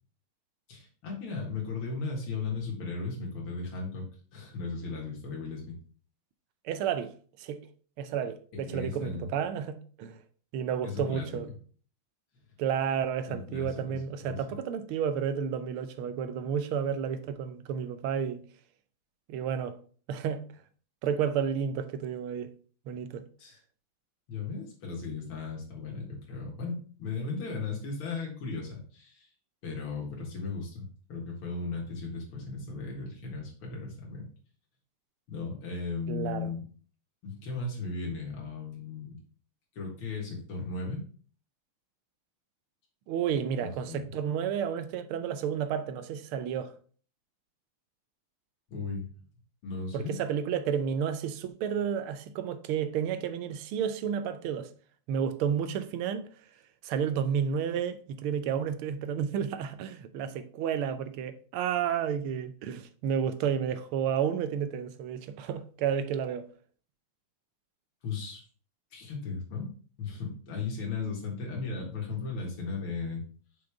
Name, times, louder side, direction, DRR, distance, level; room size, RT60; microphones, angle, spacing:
voice 1, 0.7-4.1 4.3-5.8 8.5-9.3 10.8-11.4 13.3-14.6 23.4-23.6 24.3-29.3 29.6-34.3 35.3-36.6 37.2-39.2 39.8-41.0 43.6-44.1 48.7-49.1 49.6-50.1 68.0-68.4 68.9-69.7 70.0-73.2, left 4 dB, 85° left, 2.5 m, -36 dB
voice 2, 6.6-7.6 8.0-10.2 10.5-11.5 12.6-18.4 19.3-19.8 20.1-20.4 21.0-22.5 22.9-23.2 36.1-36.5 43.1-46.7 49.9-54.7 55.1-56.3 56.8-66.5, right 8 dB, 85° right, 1.5 m, -31 dB
5.8 x 5.1 x 3.4 m
omnidirectional pair, 2.3 m